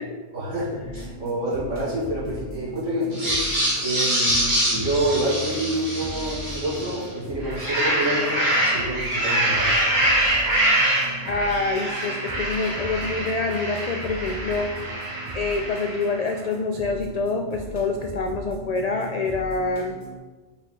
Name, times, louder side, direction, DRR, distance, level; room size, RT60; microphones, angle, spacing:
voice 1, 0.3-9.7, right 1 dB, 85° right, -7 dB, 2.4 m, -28 dB
sound 1, 0.8-20.2, right 1 dB, 15° left, 1.6 m, -39 dB
sound 2, 3.1-7.0 7.4-16.1, right 1 dB, 40° right, 2.2 m, -25 dB
voice 2, 11.3-14.7 15.3-20.0, left 3 dB, 75° left, 4 dB, 0.3 m, -26 dB
6.2 x 5.4 x 3.7 m, 1.3 s
omnidirectional pair, 1.2 m